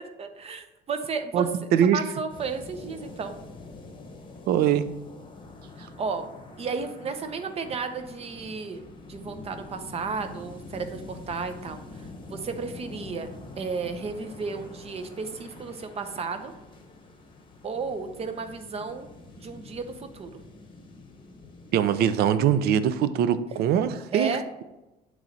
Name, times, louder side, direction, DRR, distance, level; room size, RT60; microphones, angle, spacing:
voice 1, 0.2-1.5 1.8-3.3 5.8-6.3 6.6-8.8 9.1-11.8 12.3-16.5 17.6-19.1 19.4-20.4 24.1-24.4, right 5 dB, 35° right, 8 dB, 0.7 m, -33 dB
voice 2, 1.3-2.0 4.5-4.9 21.7-24.3, right 9 dB, 70° right, 13 dB, 0.4 m, -22 dB
sound 1, 2.3-21.8, left 2 dB, 30° left, 1.0 m, -45 dB
8.3 x 3.1 x 3.9 m, 1.0 s
cardioid pair, 110°, 17 cm